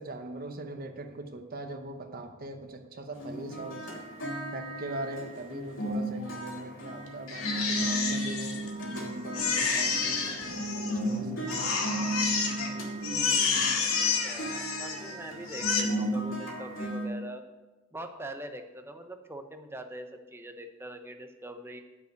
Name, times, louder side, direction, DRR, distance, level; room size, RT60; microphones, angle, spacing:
voice 1, 0.0-4.0 4.5-8.6 8.9-11.5, right 1 dB, 45° right, 5 dB, 0.9 m, -41 dB
sound 1, 3.1-17.0, right 1 dB, 70° left, 2.9 m, -35 dB
Crying sobbing, 7.3-9.0 9.3-11.1 11.5-12.7 13.0-15.1 15.5-15.8, left 5 dB, 85° left, 1.8 m, -29 dB
Guitar, 8.6-13.7, right 1 dB, 90° right, 1.3 m, -44 dB
voice 2, 14.0-17.4 17.9-21.8, right 1 dB, 10° right, 6 dB, 0.8 m, -43 dB
9.7 x 5.4 x 8.1 m, 1.2 s
head